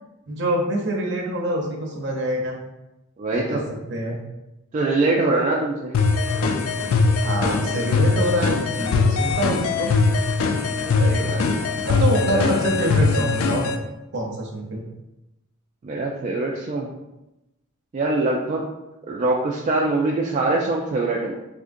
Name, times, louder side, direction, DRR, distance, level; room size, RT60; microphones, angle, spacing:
voice 1, 0.3-2.6 3.3-3.6 3.9-4.2 7.2-9.9 11.8-13.7 14.1-14.9, right 1 dB, 60° right, -1 dB, 0.7 m, -25 dB
voice 2, 3.2-3.6 4.7-5.9 11.0-11.4 12.3-12.5 15.8-16.9 17.9-18.6 19.1-21.3, right 2 dB, 35° right, -2 dB, 0.3 m, -23 dB
sound 1, 5.9-13.8, left 4 dB, 75° left, 0.3 m, -21 dB
3.6 x 2.7 x 2.5 m, 0.95 s
head